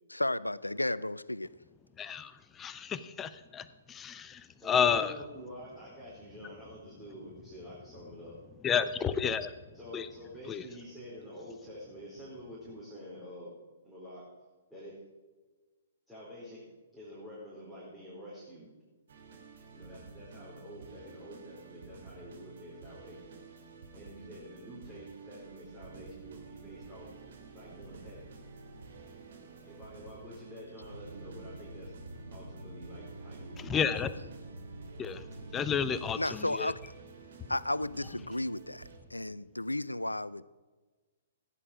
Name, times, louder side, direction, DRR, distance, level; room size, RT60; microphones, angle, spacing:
voice 1, 0.1-1.5 36.2-36.8 37.5-40.4, left 1 dB, 90° left, 0.5 m, -33 dB
voice 2, 2.0-5.1 8.6-9.5 9.9-10.1 10.5-10.6 33.6-34.1 35.0-35.2 35.5-36.7, left 7 dB, 15° left, 0.7 m, -31 dB
voice 3, 4.6-8.4 9.7-13.5 13.8-14.3 14.7-15.0 16.1-18.8 19.7-23.4 23.9-27.1 27.5-28.3 29.7-31.9 32.3-33.7 34.0-34.3, left 1 dB, 5° right, 4.6 m, -48 dB
sound 1, 19.1-39.0, right 5 dB, 55° right, 3.0 m, -51 dB
sound 2, 25.8-30.9 34.9-35.0, right 3 dB, 25° right, 3.3 m, -57 dB
sound 3, 30.9-35.9, right 1 dB, 85° right, 0.7 m, -47 dB
15.5 x 10.0 x 5.0 m
figure-of-eight pair, 120°, 0 cm